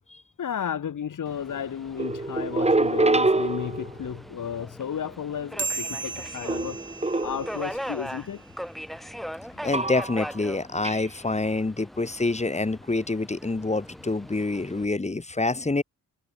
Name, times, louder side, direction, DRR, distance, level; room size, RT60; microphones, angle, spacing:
voice 1, 0.4-6.8 7.2-8.4 9.5-9.6, left 8 dB, 70° left, 5.6 m, -33 dB
Subway metro underground, 1.3-14.9, equal, ahead, 5.0 m, -40 dB
sound 1, 2.0-4.2 6.5-7.7 9.7-10.4 10.8-11.1, right 2 dB, 20° right, 6.9 m, -25 dB
sound 2, 5.6-8.4, right 4 dB, 35° right, 6.4 m, -36 dB
voice 2, 9.6-15.8, left 3 dB, 20° left, 2.9 m, -27 dB
cardioid pair, 105°, 32 cm